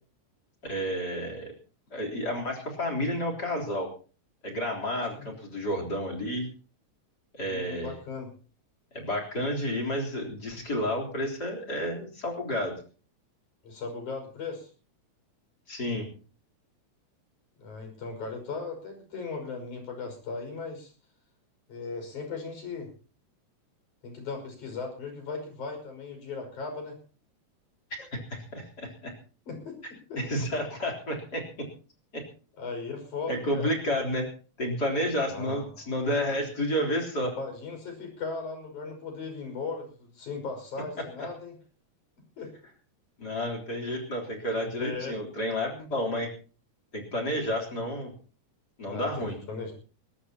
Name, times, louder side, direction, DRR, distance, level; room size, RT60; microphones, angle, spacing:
voice 1, 0.6-1.5 1.9-3.9 4.4-6.5 7.3-7.9 8.9-12.8 15.7-16.1 27.9-29.1 30.2-31.7 32.1-32.2 33.3-34.3 34.6-37.3 43.2-46.3 46.9-48.1 48.8-49.3, equal, 30° left, 4 dB, 4.2 m, -31 dB
voice 2, 7.4-8.3 13.6-14.7 17.6-20.9 21.7-22.9 24.0-27.0 29.5-29.8 30.1-30.2 32.6-33.7 35.3-35.6 37.4-41.6 42.4-42.5 44.8-45.4 48.9-49.7, left 4 dB, 80° left, 4 dB, 7.2 m, -37 dB
21.0 x 19.5 x 2.9 m, 0.38 s
omnidirectional pair, 3.4 m